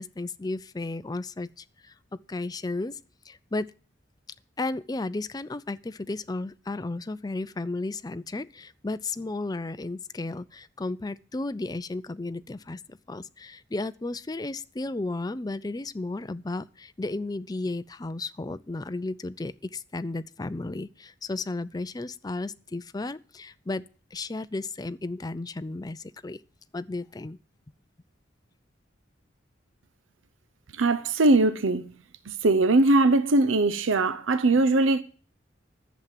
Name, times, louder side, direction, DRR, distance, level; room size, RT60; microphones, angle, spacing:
voice 1, 0.0-3.0 3.3-3.7 4.6-23.8 24.1-26.4 26.7-27.4, left 2 dB, 20° left, 0.4 m, -34 dB
voice 2, 30.7-32.0 32.3-35.0, right 2 dB, 90° right, 0.7 m, -21 dB
11.0 x 7.3 x 7.5 m
head